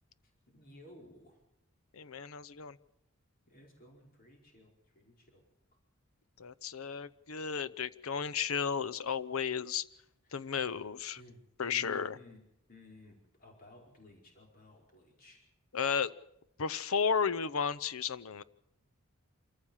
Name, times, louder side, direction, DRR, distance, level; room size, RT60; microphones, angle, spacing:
voice 1, 0.5-1.4 3.5-5.4 10.2-10.4 11.1-12.4 12.7-15.4, left 1 dB, 45° left, 0 dB, 5.1 m, -57 dB
voice 2, 1.9-2.8 6.4-9.8 10.3-11.2 11.6-12.1 15.7-16.1 16.6-18.4, left 6 dB, 75° left, 17 dB, 0.7 m, -33 dB
26.0 x 14.5 x 7.3 m, 0.84 s
head